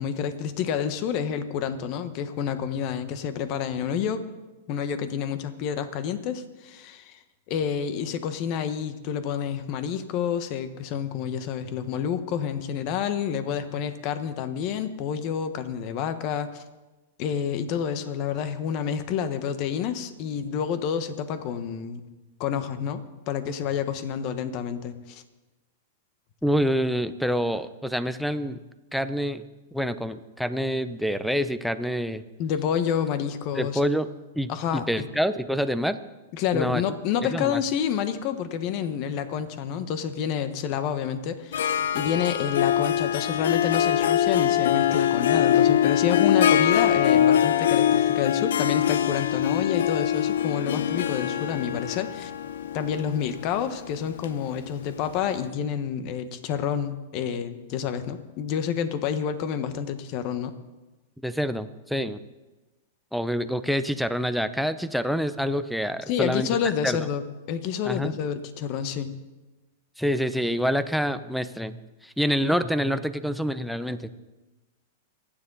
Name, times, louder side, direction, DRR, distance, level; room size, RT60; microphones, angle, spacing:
voice 1, 0.0-4.2 4.7-7.2 7.5-16.6 17.2-22.1 22.4-25.2 32.4-33.8 34.5-35.1 36.3-52.3 52.7-60.5 66.1-69.1, left 8 dB, 45° left, 10 dB, 1.3 m, -29 dB
voice 2, 26.4-28.6 28.9-29.4 29.7-32.2 33.5-34.1 34.4-36.0 36.5-36.8 37.2-37.6 61.2-62.2 63.1-67.0 67.8-68.1 70.0-74.1, equal, ahead, 13 dB, 0.7 m, -27 dB
Harp, 41.5-55.1, left 10 dB, 80° left, 0.7 m, -23 dB
26.0 x 10.0 x 4.1 m, 1.1 s
hypercardioid pair, 135°, 0 cm